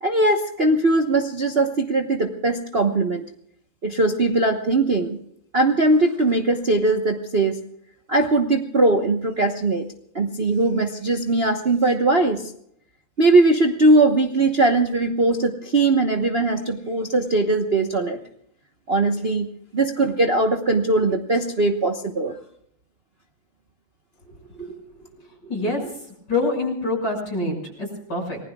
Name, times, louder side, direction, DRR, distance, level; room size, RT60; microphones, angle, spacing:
voice 1, 0.0-3.2 3.8-5.2 5.5-7.6 8.1-9.9 10.1-12.5 13.2-18.2 18.9-22.3, right 2 dB, 35° right, 3 dB, 1.1 m, -20 dB
voice 2, 25.4-25.9 26.3-28.4, left 2 dB, 50° left, 1 dB, 7.0 m, -26 dB
29.5 x 20.0 x 2.4 m, 0.70 s
omnidirectional pair, 2.3 m